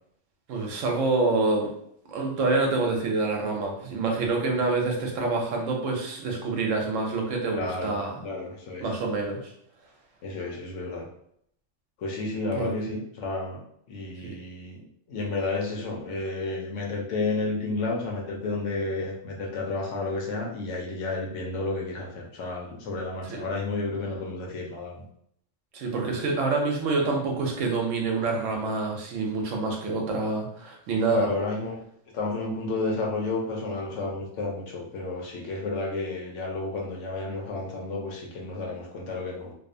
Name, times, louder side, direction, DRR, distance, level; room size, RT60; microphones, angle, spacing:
voice 1, 0.5-1.7 2.1-8.2 8.8-9.5 12.5-12.7 14.2-14.3 23.3-23.4 25.7-31.3, right 3 dB, 85° right, 1 dB, 1.0 m, -27 dB
voice 2, 7.5-8.9 10.2-11.1 12.0-13.6 13.9-14.8 15.1-25.0 31.1-39.5, left 3 dB, 80° left, 0 dB, 1.0 m, -31 dB
2.7 x 2.0 x 2.5 m, 0.70 s
omnidirectional pair, 1.3 m